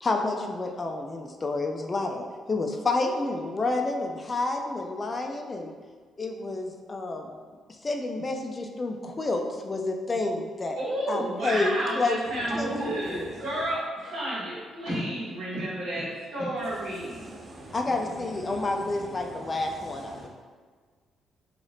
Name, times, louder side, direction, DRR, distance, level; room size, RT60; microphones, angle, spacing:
voice 1, 0.0-5.7 6.2-7.3 7.8-10.8 11.1-11.7 12.0-12.2 12.5-13.3 17.7-20.3, left 2 dB, 30° left, 3 dB, 0.3 m, -29 dB
voice 2, 10.8-17.2, right 1 dB, 90° right, -8 dB, 1.1 m, -31 dB
voice 3, 12.3-13.6 16.6-20.3, right 1 dB, 35° right, -2 dB, 0.6 m, -40 dB
2.6 x 2.4 x 3.3 m, 1.5 s
cardioid pair, 90°, 0 cm